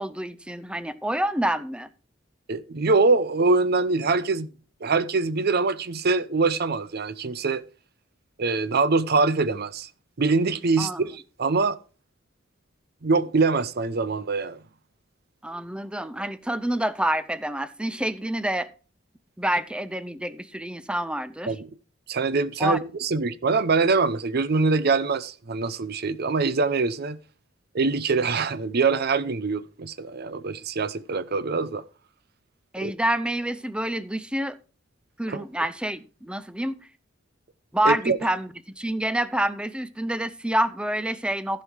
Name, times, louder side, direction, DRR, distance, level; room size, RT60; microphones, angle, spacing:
voice 1, 0.0-1.9 10.8-11.0 15.4-18.7 19.4-21.5 22.6-22.8 32.7-34.6 35.2-36.8 37.7-38.5 38.8-41.6, right 1 dB, 5° right, 0.5 m, -27 dB
voice 2, 2.5-4.5 4.8-7.6 8.4-9.9 10.2-11.8 13.0-14.6 21.5-21.7 22.1-27.2 27.7-31.8 32.8-32.9 35.3-35.4 37.8-38.2, right 4 dB, 55° right, 0.6 m, -24 dB
15.0 x 5.6 x 4.6 m
head